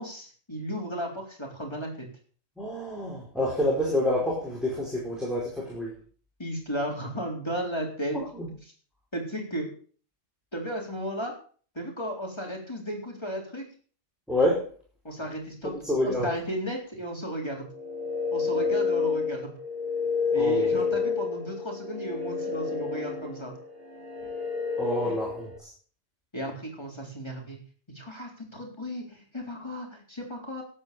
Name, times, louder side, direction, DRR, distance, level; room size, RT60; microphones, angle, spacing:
voice 1, 0.0-2.1 6.4-8.2 9.1-9.7 10.5-11.3 11.8-13.6 15.0-15.7 16.0-17.7 18.3-19.5 20.3-23.5 25.0-25.1 26.3-27.6 27.9-30.6, equal, 20° left, 0 dB, 3.9 m, -34 dB
voice 2, 2.6-5.9 8.1-8.5 14.3-14.7 15.8-16.3 20.3-20.7 24.8-25.7, left 1 dB, ahead, -5 dB, 5.0 m, -28 dB
sound 1, 17.7-25.6, left 5 dB, 45° right, 2.7 m, -29 dB
13.0 x 9.9 x 6.9 m, 0.43 s
omnidirectional pair, 1.3 m